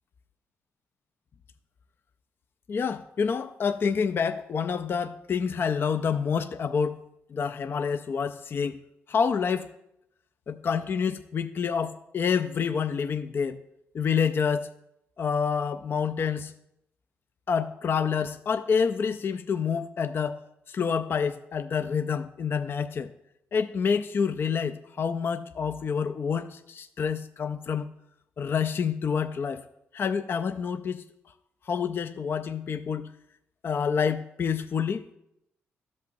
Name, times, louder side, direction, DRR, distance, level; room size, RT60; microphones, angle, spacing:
voice 1, 2.7-7.0 7.3-8.8 9.1-9.7 10.5-13.6 13.9-14.7 15.2-16.5 17.5-20.4 20.7-23.1 23.5-27.9 28.4-29.6 29.9-31.0 31.7-33.1 33.6-35.0, left 6 dB, 50° left, 10 dB, 0.3 m, -28 dB
13.0 x 5.3 x 2.6 m, 0.81 s
cardioid pair, 75°, 5 cm